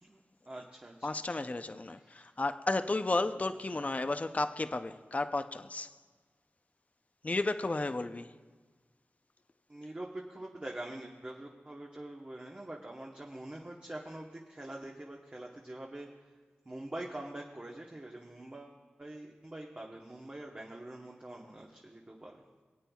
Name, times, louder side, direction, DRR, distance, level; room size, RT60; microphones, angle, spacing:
voice 1, 0.0-1.4 1.9-2.2 3.6-3.9 9.7-16.1 16.6-22.4, right 1 dB, 30° right, 1.1 m, -45 dB
voice 2, 1.0-5.9 7.2-8.3, left 2 dB, 35° left, 0.5 m, -33 dB
26.0 x 8.8 x 2.3 m
cardioid pair, 55°, 4 cm